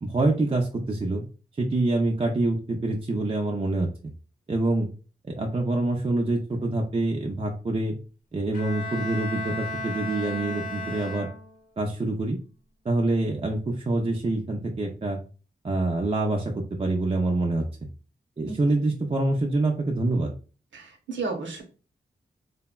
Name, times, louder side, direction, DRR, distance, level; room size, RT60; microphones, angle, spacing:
voice 1, 0.0-1.2 1.6-3.9 4.5-4.9 5.2-7.9 8.3-11.3 11.8-12.4 12.8-15.2 15.6-17.6 18.4-20.3, right 2 dB, 30° right, 1 dB, 0.4 m, -26 dB
Bowed string instrument, 8.5-11.8, left 2 dB, 45° left, 0.8 m, -34 dB
voice 2, 18.5-18.8 20.7-21.6, right 3 dB, 80° right, 3 dB, 0.8 m, -33 dB
3.3 x 2.1 x 2.2 m, 0.36 s
cardioid pair, 50°, 19 cm